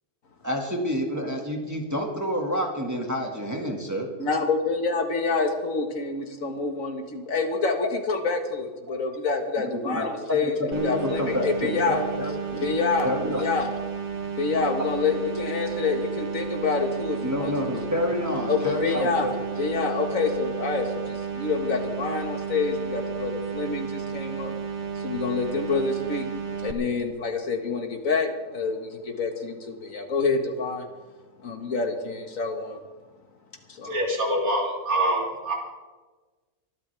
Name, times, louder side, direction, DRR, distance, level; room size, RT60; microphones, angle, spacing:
voice 1, 0.4-4.1 9.8-12.6 13.0-13.4 17.2-19.3, equal, 10° right, 0 dB, 1.9 m, -28 dB
voice 2, 4.2-10.5 10.8-12.0 12.6-13.7 14.4-17.5 18.5-19.3 19.6-24.5 25.0-26.3 26.6-30.9 31.4-32.8 33.7-33.9, left 4 dB, 60° left, 4 dB, 2.0 m, -27 dB
sound 1, 10.7-26.7, right 6 dB, 40° right, 1.1 m, -33 dB
voice 3, 33.8-35.5, right 1 dB, 70° right, -2 dB, 3.6 m, -25 dB
23.5 x 12.0 x 3.5 m, 1.3 s
omnidirectional pair, 1.6 m